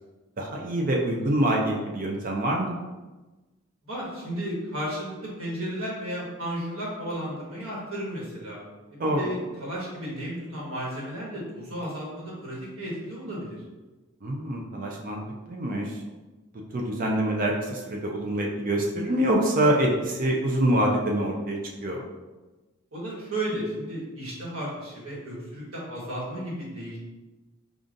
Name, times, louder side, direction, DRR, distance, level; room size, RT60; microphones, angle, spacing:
voice 1, 0.4-2.8 9.0-9.2 14.2-15.2 15.5-16.0 16.7-22.0, right 1 dB, 40° right, 0 dB, 0.4 m, -25 dB
voice 2, 3.9-8.6 9.0-13.6 22.9-27.0, right 1 dB, 85° right, -5 dB, 1.4 m, -33 dB
5.0 x 2.4 x 2.5 m, 1.2 s
head